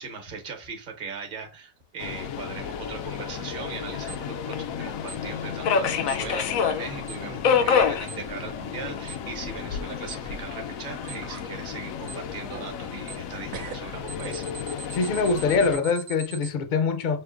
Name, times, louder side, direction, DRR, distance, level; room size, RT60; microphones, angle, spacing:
voice 1, 0.0-14.5, right 5 dB, 45° right, 1.0 m, -39 dB
Subway metro underground, 2.0-15.8, left 7 dB, 90° left, 1.0 m, -29 dB
sound 1, 3.0-3.8 4.0-4.5 5.0-5.1 5.9-6.0 6.8-6.9 7.3-7.7 7.9-8.1 10.6-10.7 11.0-11.5 12.0-13.3 13.5-14.8, right 7 dB, 85° right, 1.1 m, -44 dB
Alarm, 4.1-4.2 5.1-5.2 6.1-6.2 7.1-7.2 8.1-8.2 9.1-9.2 10.1-10.2 11.1-11.2 12.1-12.2 13.1-13.2 14.1-16.5, right 8 dB, 65° right, 0.6 m, -40 dB
voice 2, 14.9-17.2, left 4 dB, 55° left, 0.5 m, -24 dB
5.7 x 2.6 x 2.5 m
omnidirectional pair, 1.4 m